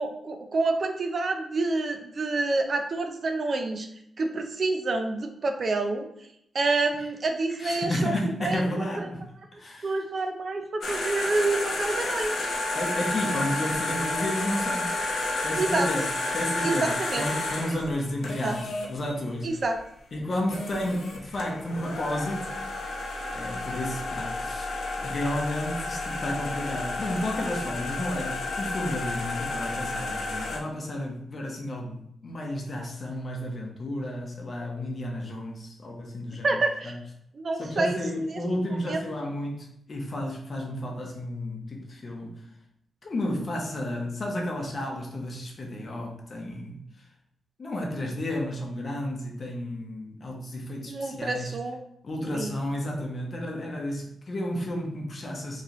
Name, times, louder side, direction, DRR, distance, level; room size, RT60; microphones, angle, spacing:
voice 1, 0.0-3.9 4.2-6.1 6.5-9.1 9.8-12.5 15.5-15.9 16.6-17.3 18.4-18.6 19.4-19.8 36.4-37.0 37.3-38.4 38.9-39.0 50.9-51.8 52.3-52.6, right 3 dB, 45° right, 5 dB, 0.4 m, -28 dB
voice 2, 7.6-9.2 9.5-9.9 12.7-14.9 15.4-16.1 16.3-19.5 20.1-22.5 23.3-24.7 25.0-37.0 37.6-42.4 43.0-46.8 47.6-51.6 52.0-55.6, left 1 dB, 35° left, 0 dB, 0.8 m, -32 dB
sound 1, 10.8-18.9 20.2-20.3 20.5-30.6, left 2 dB, 70° left, 0.6 m, -31 dB
3.1 x 2.9 x 3.9 m, 0.74 s
wide cardioid pair, 140°, 0 cm